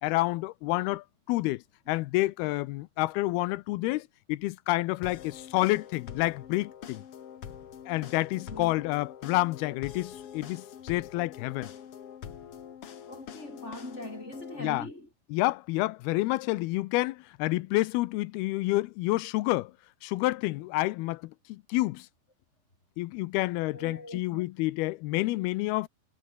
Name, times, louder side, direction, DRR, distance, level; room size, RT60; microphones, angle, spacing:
voice 1, 0.0-7.0 7.9-11.7 14.6-14.9 15.3-19.7 20.0-22.1 23.0-25.9, left 19 dB, 80° left, 2.5 m, -29 dB
sound 1, 5.0-14.6, left 8 dB, 50° left, 1.9 m, -45 dB
voice 2, 13.1-15.1 23.7-24.4, left 1 dB, 15° left, 7.7 m, -41 dB
omnidirectional pair, 4.6 m